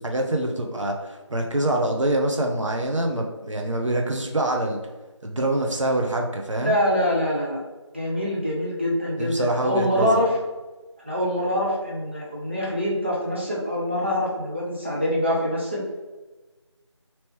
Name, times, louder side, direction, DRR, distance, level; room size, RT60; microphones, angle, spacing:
voice 1, 0.0-4.8 5.2-6.7 9.2-10.2, right 1 dB, 85° right, 1 dB, 0.8 m, -25 dB
voice 2, 6.6-7.6 7.9-10.4 11.0-15.8, left 1 dB, 25° right, -5 dB, 0.5 m, -24 dB
3.1 x 2.9 x 3.2 m, 1.2 s
figure-of-eight pair, 175°, 15 cm